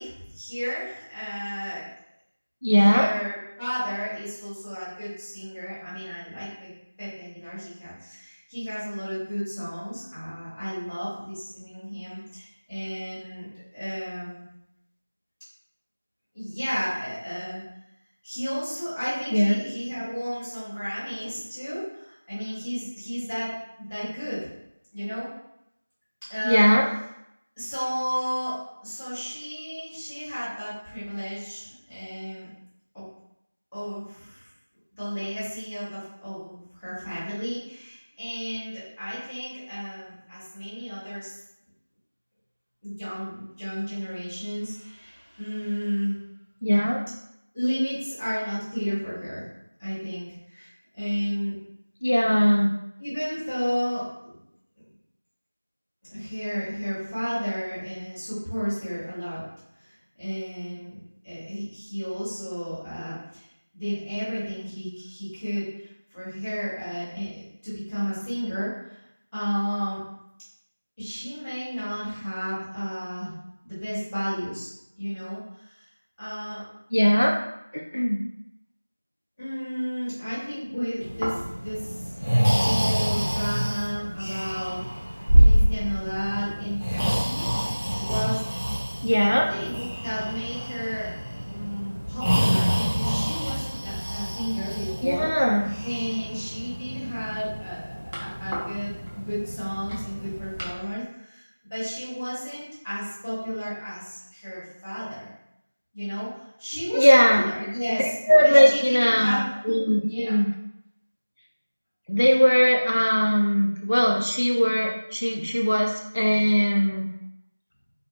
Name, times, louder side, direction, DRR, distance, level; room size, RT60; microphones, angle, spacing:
voice 1, 0.0-1.8 2.8-6.7 7.0-14.4 16.3-17.6 18.2-24.5 24.9-25.3 26.3-26.7 27.6-32.5 32.9-33.0 33.7-34.5 34.9-41.3 42.8-46.2 47.5-49.5 49.8-50.7 50.9-51.6 53.0-54.3 56.1-59.4 59.8-61.0 61.2-63.5 63.7-69.0 69.3-70.0 71.0-73.3 73.6-75.8 76.2-76.6 79.4-82.3 82.6-84.8 85.0-87.4 88.0-88.4 89.1-91.1 91.4-95.3 95.8-101.4 101.7-105.3 105.9-109.5 110.0-110.4, equal, 5° left, -20 dB, 0.6 m, -33 dB
voice 2, 2.6-3.1 19.3-19.6 26.4-26.8 46.6-47.0 52.0-52.7 76.9-77.3 77.7-78.2 89.0-89.5 95.0-95.7 106.9-107.4 107.9-110.5 112.1-117.1, equal, 60° left, 0 dB, 0.3 m, -20 dB
Breathing, 81.0-100.7, equal, 40° right, 0.7 m, -26 dB
2.4 x 2.2 x 2.6 m, 0.81 s
figure-of-eight pair, 175°, 0 cm